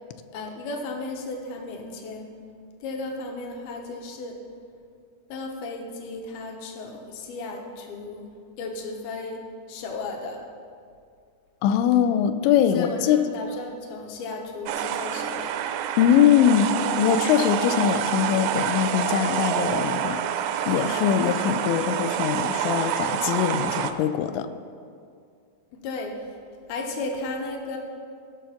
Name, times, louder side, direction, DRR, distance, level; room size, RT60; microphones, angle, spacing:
voice 1, 0.3-2.3 2.8-4.4 5.3-9.4 9.7-10.4 12.7-15.6 25.7-26.4 26.7-27.8, left 2 dB, 70° left, 2 dB, 2.8 m, -34 dB
voice 2, 11.6-13.2 16.0-20.2 20.7-24.5, left 9 dB, 85° left, 10 dB, 2.9 m, -22 dB
sound 1, 14.7-23.9, right 9 dB, 80° right, 2.7 m, -27 dB
17.0 x 6.3 x 5.7 m, 2.3 s
omnidirectional pair, 5.1 m